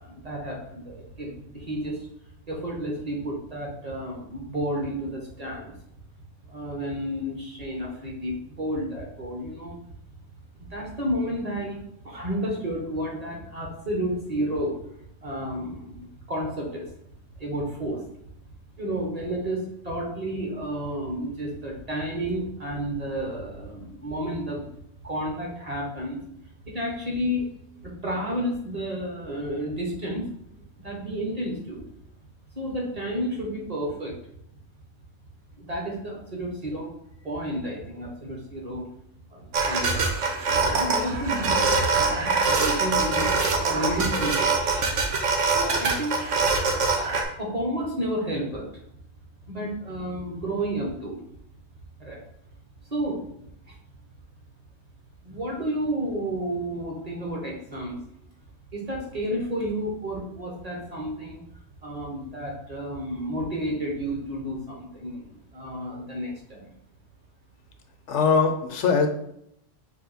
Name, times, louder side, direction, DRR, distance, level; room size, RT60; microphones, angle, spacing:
voice 1, 0.0-2.0 2.5-5.7 6.4-9.7 10.6-11.8 12.0-14.8 15.2-16.9 17.4-18.1 18.8-24.7 25.0-26.2 26.6-27.5 27.8-30.2 30.8-31.8 32.5-34.1 35.6-36.9 37.2-38.9 39.3-40.3 40.7-43.3 43.6-44.8 45.5-46.1 47.3-48.8 49.5-51.2 52.0-52.2 52.9-53.2 53.7-53.8 55.2-58.0 58.7-61.4 61.8-66.7, equal, 35° right, -2 dB, 0.9 m, -31 dB
sound 1, 39.5-47.2, right 4 dB, 75° right, 1.1 m, -24 dB
voice 2, 68.1-69.1, left 5 dB, 75° left, 5 dB, 0.9 m, -21 dB
4.9 x 2.5 x 4.0 m, 0.73 s
omnidirectional pair, 1.3 m